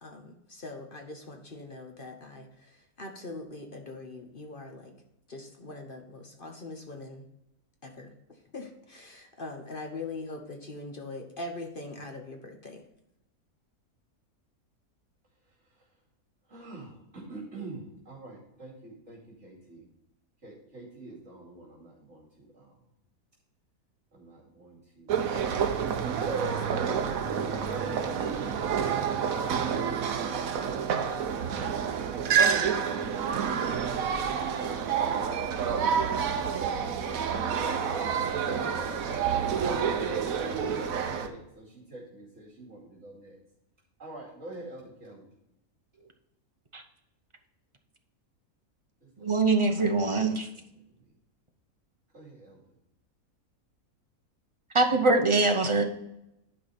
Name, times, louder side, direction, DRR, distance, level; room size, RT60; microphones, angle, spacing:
voice 1, 0.0-4.9 5.3-7.2 7.8-12.8, left 2 dB, 40° left, 3 dB, 1.0 m, -42 dB
voice 2, 16.5-19.9 20.4-22.8 24.1-25.5 37.0-39.0 39.6-43.4 44.0-45.3 49.0-49.5 50.9-51.1 52.1-52.6, right 2 dB, 50° right, -6 dB, 2.9 m, -46 dB
sound 1, 25.1-41.3, right 7 dB, 70° right, 1.2 m, -28 dB
voice 3, 49.2-50.5 54.7-55.8, right 3 dB, 30° right, 5 dB, 0.6 m, -23 dB
11.5 x 5.0 x 4.1 m, 0.86 s
omnidirectional pair, 1.6 m